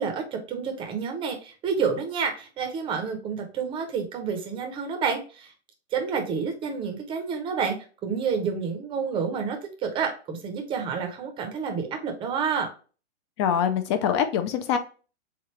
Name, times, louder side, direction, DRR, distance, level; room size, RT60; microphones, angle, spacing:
voice 1, 0.0-5.5 5.9-7.8 8.0-12.7, right 6 dB, 15° right, 5 dB, 0.6 m, -29 dB
voice 2, 13.4-14.8, left 8 dB, 25° left, 8 dB, 0.4 m, -24 dB
3.7 x 3.4 x 3.0 m, 0.36 s
hypercardioid pair, 135°, 34 cm